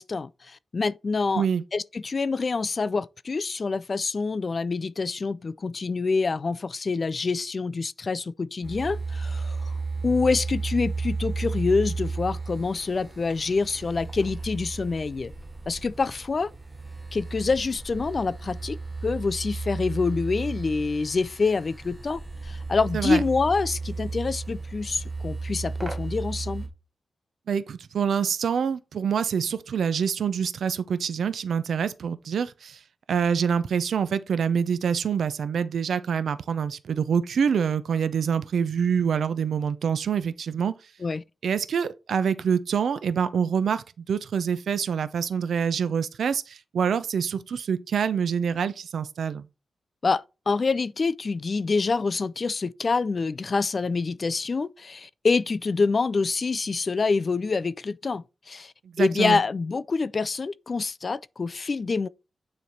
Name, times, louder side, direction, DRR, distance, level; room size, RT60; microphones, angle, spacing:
voice 1, 0.0-1.4 1.7-9.7 10.0-15.3 15.7-16.5 17.1-18.8 19.0-26.7 41.0-41.2 50.0-62.1, left 4 dB, 40° left, 0.3 m, -26 dB
sound 1, 8.6-26.7, right 3 dB, 15° right, 1.0 m, -34 dB
voice 2, 27.5-32.8 33.1-40.7 41.4-49.5 59.0-59.4, right 7 dB, 80° right, 0.5 m, -26 dB
9.3 x 3.2 x 4.3 m
wide cardioid pair, 140°, 0 cm